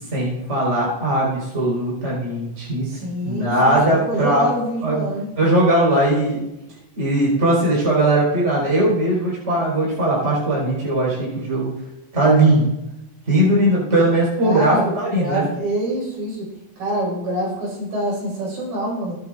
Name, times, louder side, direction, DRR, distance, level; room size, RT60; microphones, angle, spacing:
voice 1, 0.1-2.9 3.2-4.5 4.8-5.1 5.4-6.4 7.0-11.7 12.1-12.7 13.3-15.5, right 1 dB, 20° right, -5 dB, 4.7 m, -19 dB
voice 2, 2.8-5.3 14.4-16.5 16.8-19.1, right 1 dB, 65° right, -3 dB, 6.5 m, -26 dB
20.5 x 9.5 x 2.5 m, 0.90 s
omnidirectional pair, 4.2 m